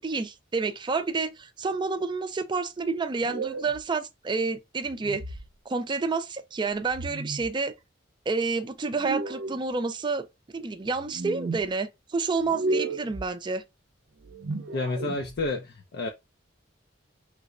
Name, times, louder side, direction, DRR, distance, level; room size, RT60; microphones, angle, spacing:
voice 1, 0.0-5.2 5.7-7.7 8.3-10.3 10.5-13.6, right 4 dB, 25° right, 0.4 m, -29 dB
sound 1, 3.2-3.8 4.8-5.5 6.9-7.5 8.9-9.6 10.9-11.6 12.4-13.3 14.2-15.4, right 2 dB, 75° right, 0.6 m, -33 dB
voice 2, 14.7-16.1, left 2 dB, 60° left, 0.5 m, -30 dB
3.2 x 2.1 x 3.6 m
head